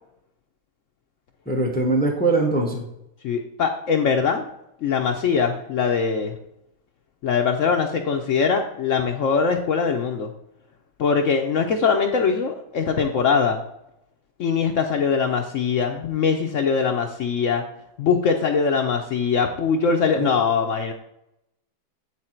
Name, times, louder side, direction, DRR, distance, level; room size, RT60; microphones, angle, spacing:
voice 1, 1.5-2.9 20.2-20.3, right 2 dB, 10° left, 1 dB, 0.5 m, -22 dB
voice 2, 3.2-4.4 4.8-6.3 7.2-10.3 11.0-13.6 14.4-17.6 18.0-20.9, left 5 dB, 85° left, 3 dB, 0.6 m, -22 dB
9.1 x 3.9 x 4.4 m, 0.80 s
omnidirectional pair, 2.0 m